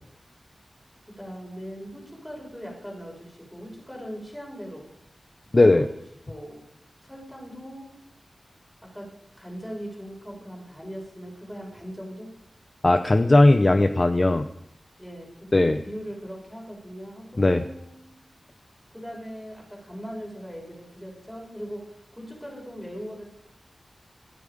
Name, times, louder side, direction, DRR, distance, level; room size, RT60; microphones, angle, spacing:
voice 1, 1.2-4.8 5.6-5.9 6.3-6.6 7.0-7.9 8.8-9.1 9.4-12.3 15.0-18.2 18.9-23.2, equal, 5° left, -2 dB, 6.1 m, -40 dB
voice 2, 5.5-5.9 12.8-14.5 15.5-15.8 17.4-17.6, left 2 dB, 35° left, 8 dB, 0.7 m, -18 dB
18.5 x 12.5 x 5.1 m, 0.77 s
wide cardioid pair, 105°, 0 cm